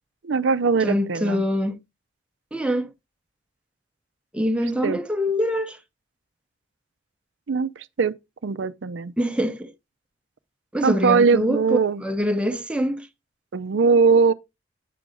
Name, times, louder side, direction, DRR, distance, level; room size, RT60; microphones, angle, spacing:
voice 1, 0.2-1.5 4.8-5.0 7.5-8.1 8.4-9.1 10.8-12.0 13.5-14.3, right 5 dB, 70° right, 0.5 m, -20 dB
voice 2, 0.8-1.8 2.5-2.9 4.3-5.8 9.2-9.7 10.7-13.1, equal, 5° right, 0.7 m, -24 dB
8.5 x 6.1 x 3.8 m
head